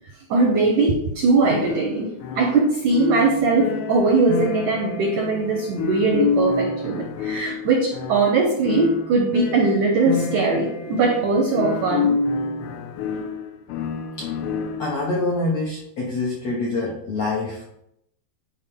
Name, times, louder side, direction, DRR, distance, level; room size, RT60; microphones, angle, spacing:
voice 1, 0.3-12.1, right 3 dB, 80° right, 2 dB, 1.8 m, -20 dB
sound 1, 1.5-15.1, left 5 dB, 85° left, 2.7 m, -28 dB
voice 2, 14.8-17.8, left 2 dB, 65° left, -4 dB, 1.6 m, -26 dB
10.5 x 4.8 x 3.7 m, 0.76 s
omnidirectional pair, 4.8 m